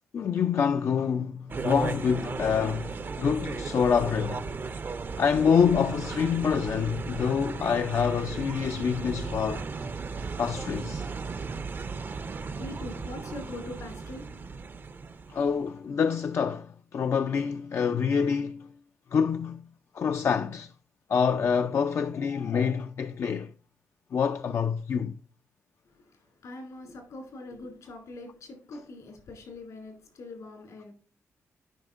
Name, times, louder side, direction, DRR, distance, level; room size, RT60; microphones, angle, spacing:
voice 1, 0.1-4.4 5.2-9.7 10.4-11.1 15.3-18.7 19.1-19.6 19.9-20.7 21.1-23.5 24.1-25.1, left 6 dB, 55° left, 0.3 m, -26 dB
sound 1, 1.5-15.7, right 4 dB, 40° right, 0.5 m, -36 dB
voice 2, 12.6-14.5 25.8-30.9, left 2 dB, 75° left, 2.5 m, -43 dB
11.0 x 5.0 x 2.5 m
cardioid pair, 70°, 6 cm